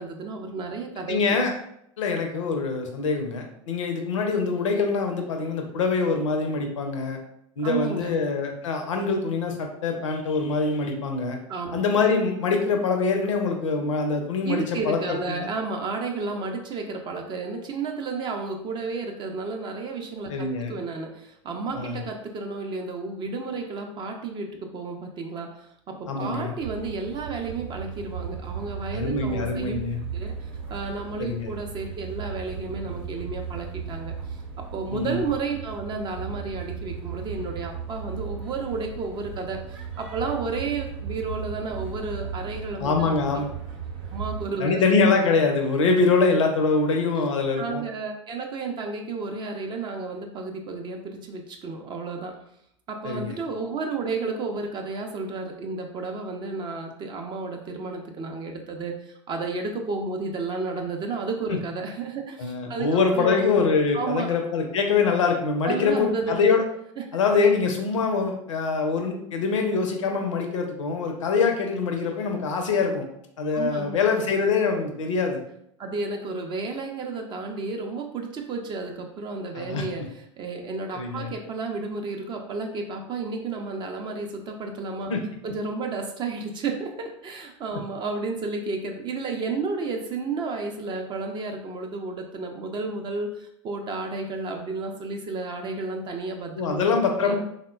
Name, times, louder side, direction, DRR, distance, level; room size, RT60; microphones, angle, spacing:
voice 1, 0.0-1.2 7.6-8.2 11.5-11.8 14.4-29.7 30.1-39.6 40.0-43.4 44.1-44.8 47.6-52.4 52.9-63.4 63.9-64.3 65.6-66.5 67.0-67.1 73.5-74.0 75.8-85.1 85.4-96.9 97.2-97.4, right 3 dB, 30° right, 3 dB, 0.4 m, -32 dB
voice 2, 1.1-1.5 2.0-7.2 7.6-11.4 11.7-15.5 20.3-20.8 21.7-22.0 26.1-26.5 28.9-30.0 31.2-31.5 34.9-35.2 42.8-43.4 44.6-47.8 53.0-53.4 61.5-61.6 62.4-66.6 67.1-73.1 73.4-75.4 79.6-79.8 80.9-81.3 85.1-85.2 96.6-97.4, left 4 dB, 75° left, 3 dB, 0.5 m, -24 dB
sound 1, 26.6-44.5, right 7 dB, 60° right, 0.7 m, -36 dB
3.5 x 2.1 x 2.3 m, 0.73 s
figure-of-eight pair, 85°, 16 cm